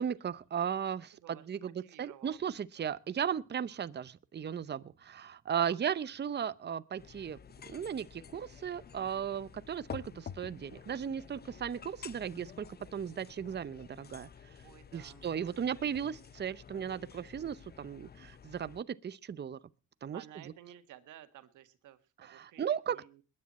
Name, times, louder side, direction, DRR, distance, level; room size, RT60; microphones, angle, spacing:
voice 1, 0.0-7.4 7.7-14.3 14.9-19.6 20.0-20.2 22.2-23.0, right 8 dB, 35° right, 0.7 m, -36 dB
voice 2, 1.1-2.4 14.6-15.6 20.1-23.2, right 12 dB, 85° right, 1.8 m, -55 dB
sound 1, 7.0-18.8, left 7 dB, 35° left, 0.7 m, -51 dB
21.0 x 9.9 x 4.2 m
cardioid pair, 90°, 30 cm